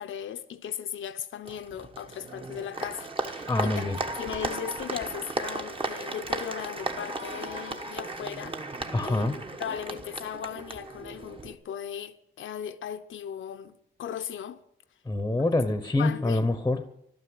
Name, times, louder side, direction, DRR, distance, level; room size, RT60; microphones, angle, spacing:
voice 1, 0.0-8.6 9.0-14.6 16.0-16.5, left 9 dB, 80° left, 0.9 m, -37 dB
Applause, 1.4-11.5, right 2 dB, 25° right, 1.2 m, -35 dB
voice 2, 3.5-4.0 8.9-9.4 15.1-16.9, left 2 dB, 10° left, 0.9 m, -26 dB
13.0 x 12.0 x 7.8 m
wide cardioid pair, 140°, 20 cm